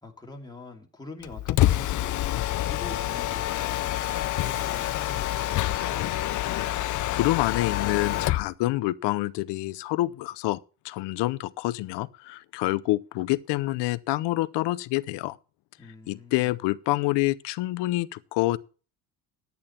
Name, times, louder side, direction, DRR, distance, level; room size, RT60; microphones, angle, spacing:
voice 1, 0.0-6.0 15.8-16.6, left 2 dB, 10° left, 2.5 m, -45 dB
Mechanisms, 1.2-8.5, left 14 dB, 45° left, 0.6 m, -27 dB
voice 2, 7.1-10.6 10.8-15.4 16.1-18.6, left 18 dB, 75° left, 0.8 m, -27 dB
11.0 x 8.9 x 4.4 m
cardioid pair, 125°, 42 cm